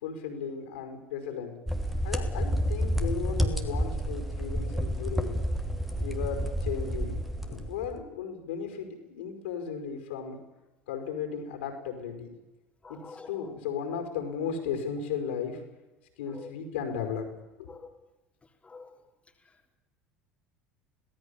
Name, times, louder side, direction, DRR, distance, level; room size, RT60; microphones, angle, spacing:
voice 1, 0.0-1.6 2.0-5.4 6.0-7.2 7.4-10.4 10.9-12.4 12.9-15.6 16.2-17.3 17.6-17.7, left 7 dB, 65° left, 6 dB, 5.4 m, -35 dB
sound 1, 1.7-8.0, equal, ahead, 3.1 m, -30 dB
voice 2, 12.8-13.5 16.3-16.5 17.7-17.9 18.6-18.9, left 4 dB, 15° left, 1 dB, 3.8 m, -46 dB
27.0 x 18.5 x 7.1 m, 1.1 s
figure-of-eight pair, 70°, 6 cm